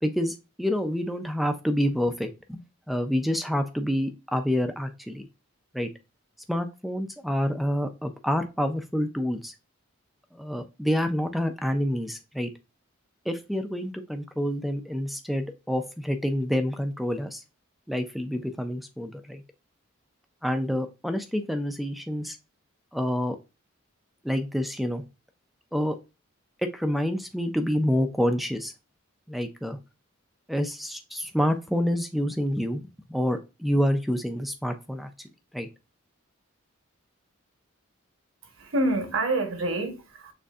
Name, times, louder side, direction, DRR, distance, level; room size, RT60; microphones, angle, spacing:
voice 1, 0.0-5.3 5.7-5.9 6.5-9.5 10.3-12.5 13.3-17.4 17.9-19.4 20.4-22.4 22.9-23.4 24.2-25.0 25.7-26.0 26.7-28.7 29.3-29.8 30.5-35.3 35.5-35.7, equal, ahead, 0.3 m, -28 dB
voice 2, 38.4-40.3, right 2 dB, 75° right, 1.1 m, -27 dB
6.4 x 2.6 x 2.3 m
head